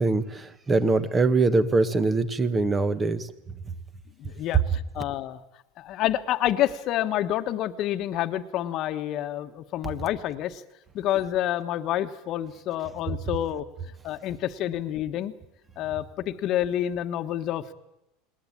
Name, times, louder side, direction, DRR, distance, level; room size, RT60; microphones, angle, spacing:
voice 1, 0.0-3.3, right 3 dB, 15° right, 14 dB, 1.4 m, -23 dB
voice 2, 4.2-5.4 5.8-10.6 10.9-13.6 14.0-15.3 15.8-17.7, left 12 dB, 45° left, 8 dB, 1.3 m, -28 dB
20.5 x 19.5 x 8.9 m, 0.86 s
supercardioid pair, 140°, 0 cm